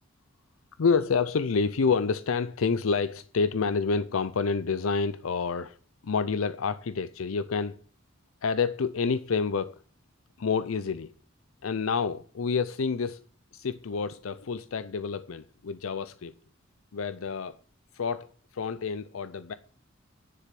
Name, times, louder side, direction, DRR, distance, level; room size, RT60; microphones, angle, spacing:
voice 1, 0.8-5.8 6.0-7.8 8.4-9.8 10.4-11.1 11.6-13.2 13.5-16.3 16.9-17.6 17.9-19.5, left 5 dB, 80° left, 0.5 m, -28 dB
10.0 x 7.5 x 7.5 m
head